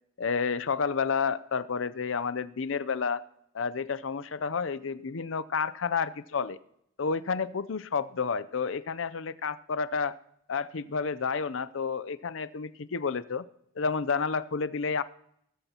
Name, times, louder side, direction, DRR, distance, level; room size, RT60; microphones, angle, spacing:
voice 1, 0.2-3.2 3.5-6.6 7.0-10.1 10.5-13.4 13.8-15.0, left 5 dB, 70° left, 15 dB, 0.6 m, -30 dB
18.5 x 13.5 x 2.9 m, 0.72 s
head